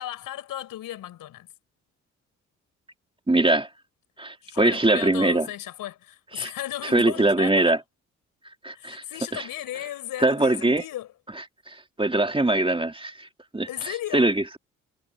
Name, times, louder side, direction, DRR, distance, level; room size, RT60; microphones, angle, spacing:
voice 1, 0.0-1.5 4.4-7.8 8.7-11.1 13.7-14.3, left 13 dB, 65° left, 4.1 m, -35 dB
voice 2, 3.3-3.7 4.2-5.5 6.4-6.5 6.8-7.8 8.6-9.0 9.3-9.4 10.2-10.8 11.7-13.3 13.5-14.6, right 2 dB, 15° right, 2.4 m, -22 dB
hypercardioid pair, 45°, 35 cm